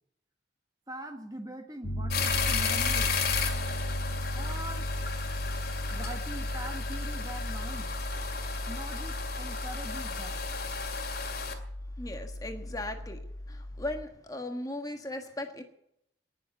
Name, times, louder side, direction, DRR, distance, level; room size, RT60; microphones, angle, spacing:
voice 1, 0.9-3.2 4.3-4.9 5.9-7.9 8.7-10.4, right 1 dB, 20° right, 5 dB, 1.4 m, -42 dB
Piano, 1.8-14.0, equal, 75° left, 1.3 m, -36 dB
sound 1, 2.1-11.5, left 5 dB, 50° left, 2.4 m, -34 dB
voice 2, 12.0-13.2 13.5-15.6, left 1 dB, 20° left, 5 dB, 1.4 m, -37 dB
19.0 x 7.2 x 9.0 m, 0.77 s
head